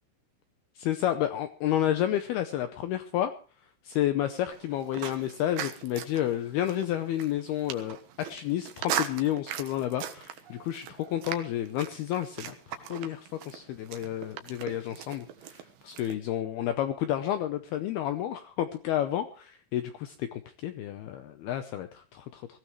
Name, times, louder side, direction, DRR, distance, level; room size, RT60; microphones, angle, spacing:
voice 1, 0.8-3.3 3.8-22.5, left 12 dB, 80° left, 9 dB, 2.3 m, -31 dB
sound 1, 4.5-16.2, right 10 dB, 65° right, 2.8 m, -39 dB
21.0 x 15.5 x 3.2 m, 0.39 s
omnidirectional pair, 5.6 m